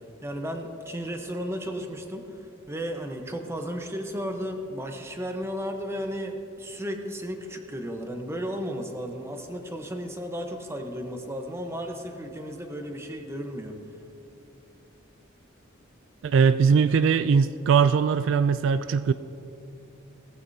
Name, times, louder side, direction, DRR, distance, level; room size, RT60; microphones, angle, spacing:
voice 1, 0.2-2.3 2.7-13.7, equal, 15° right, 4 dB, 1.0 m, -34 dB
voice 2, 16.2-19.1, right 6 dB, 65° right, 13 dB, 0.3 m, -20 dB
18.0 x 14.5 x 2.8 m, 2.8 s
head